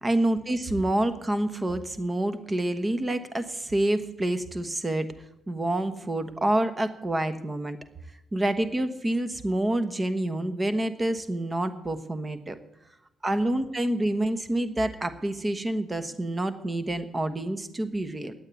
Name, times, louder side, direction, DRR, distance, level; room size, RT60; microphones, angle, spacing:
voice 1, 0.0-5.1 5.5-7.8 8.3-12.6 13.2-18.3, right 1 dB, 20° right, 11 dB, 1.2 m, -27 dB
9.9 x 8.7 x 9.5 m, 0.85 s
cardioid pair, 90°, 0 cm